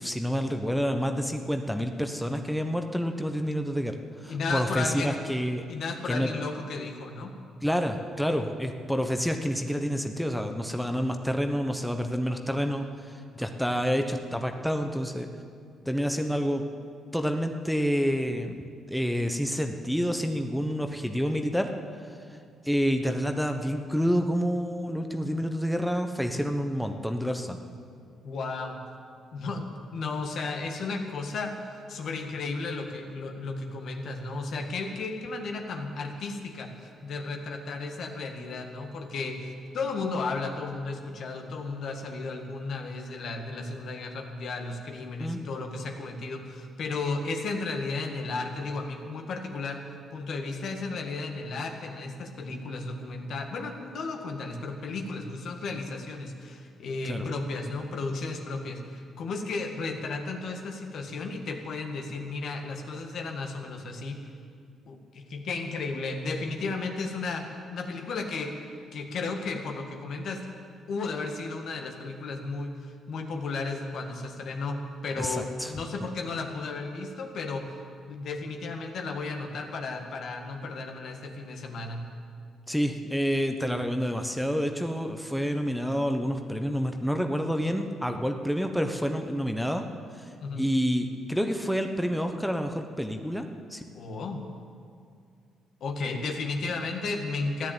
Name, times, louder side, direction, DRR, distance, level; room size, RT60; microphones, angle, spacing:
voice 1, 0.0-5.6 6.1-6.3 7.6-15.3 15.9-16.6 17.1-18.6 18.9-21.7 22.6-27.6 45.2-45.4 57.1-57.2 75.2-75.7 76.0-76.1 82.7-89.8 90.2-90.3 90.6-93.8, equal, ahead, 5 dB, 1.0 m, -28 dB
voice 2, 4.3-5.2 5.7-7.3 28.2-28.8 29.3-31.5 31.9-49.8 50.1-64.2 64.9-67.5 67.7-68.5 68.9-70.4 70.9-77.7 78.1-82.1 90.4-90.6 93.9-94.4 95.8-97.7, left 3 dB, 65° left, 4 dB, 1.8 m, -34 dB
14.5 x 10.5 x 8.9 m, 2.3 s
cardioid pair, 90°, 0 cm